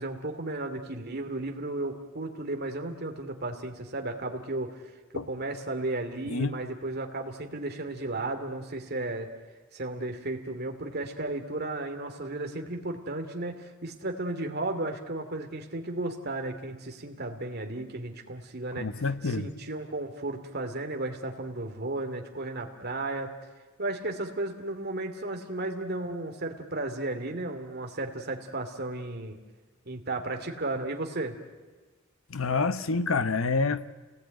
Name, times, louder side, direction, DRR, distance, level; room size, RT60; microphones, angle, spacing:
voice 1, 0.0-4.8 5.1-9.3 9.7-23.3 23.8-29.4 29.9-31.3, right 2 dB, 50° right, 5 dB, 2.6 m, -34 dB
voice 2, 18.8-19.5 32.3-33.9, left 4 dB, 80° left, 12 dB, 0.9 m, -28 dB
28.5 x 19.0 x 9.2 m, 1.3 s
head